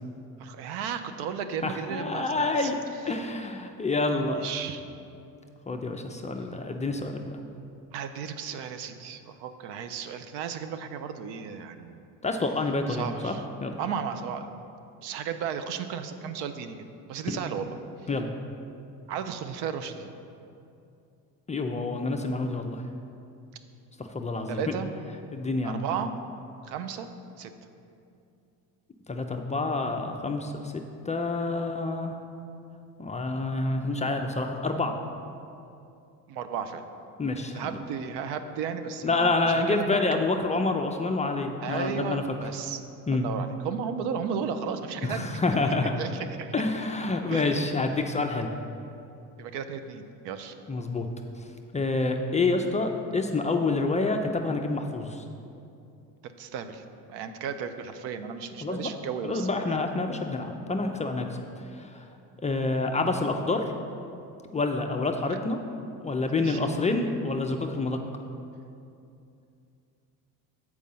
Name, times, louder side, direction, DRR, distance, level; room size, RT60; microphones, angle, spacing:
voice 1, 0.4-2.7 4.4-4.8 7.9-12.0 12.9-13.4 13.8-14.5 15.0-16.8 17.1-17.8 19.1-20.1 24.5-24.9 25.6-26.1 26.6-27.1 27.4-27.5 36.3-36.8 37.5-40.0 41.6-42.8 43.1-45.4 46.0-46.1 46.4-46.5 47.3-47.7 49.4-50.6 56.2-56.8 57.1-59.6 66.4-66.7, right 7 dB, 70° right, 9 dB, 0.6 m, -34 dB
voice 2, 1.6-2.8 3.0-4.4 5.7-7.4 12.2-13.4 13.6-13.9 17.3-17.4 18.1-18.3 21.5-22.8 24.0-24.6 25.3-25.8 29.1-30.7 31.1-32.1 33.0-35.0 37.2-37.7 39.0-42.2 43.1-43.3 45.0-45.9 46.5-48.5 50.7-51.1 51.7-55.2 58.6-58.9 59.2-61.4 61.8-62.0 62.4-63.6 64.5-65.6 66.0-68.0, left 3 dB, 20° left, 4 dB, 0.4 m, -28 dB
7.3 x 4.8 x 5.4 m, 2.6 s
supercardioid pair, 95°, 42 cm